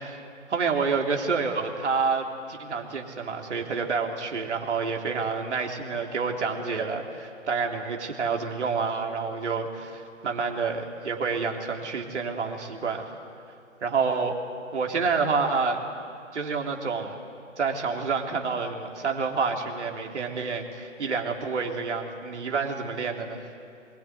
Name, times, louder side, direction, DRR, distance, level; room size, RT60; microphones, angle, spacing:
voice 1, 0.5-13.1 13.8-14.4 14.7-15.8 16.3-17.1 17.6-23.4, right 5 dB, 60° right, 1 dB, 3.5 m, -28 dB
23.5 x 21.0 x 9.5 m, 2.4 s
figure-of-eight pair, 145°, 38 cm